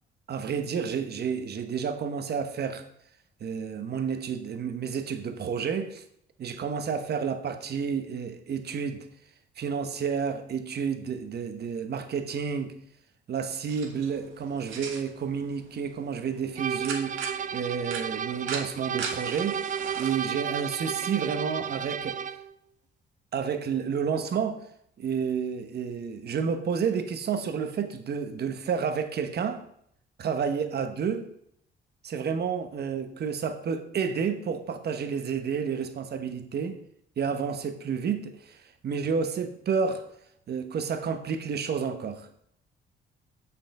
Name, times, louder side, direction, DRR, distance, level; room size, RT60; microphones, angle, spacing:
voice 1, 0.3-2.8 3.4-6.0 6.4-9.1 9.6-12.7 13.3-22.2 23.3-24.6 25.0-29.6 30.2-31.2 32.0-36.8 37.2-40.0 40.5-42.3, right 6 dB, 55° right, 8 dB, 1.1 m, -30 dB
sound 1, 13.7-20.2, right 5 dB, 80° right, 1.4 m, -40 dB
sound 2, 16.6-22.5, right 7 dB, 40° right, 0.4 m, -33 dB
6.9 x 5.7 x 5.4 m, 0.69 s
cardioid pair, 90°, 20 cm